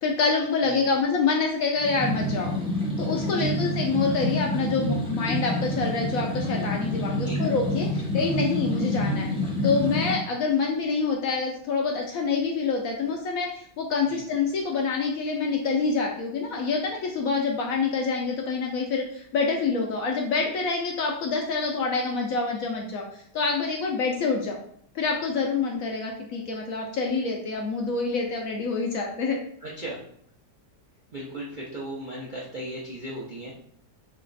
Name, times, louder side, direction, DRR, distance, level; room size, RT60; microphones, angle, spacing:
voice 1, 0.0-2.5 3.0-9.3 9.6-24.6 24.9-29.4, left 4 dB, 70° left, 1 dB, 0.8 m, -26 dB
sound 1, 1.8-10.1, left 1 dB, 5° right, 0.5 m, -28 dB
voice 2, 29.6-30.0 31.1-33.5, right 1 dB, 55° right, -5 dB, 0.5 m, -36 dB
3.3 x 3.0 x 3.8 m, 0.65 s
omnidirectional pair, 1.8 m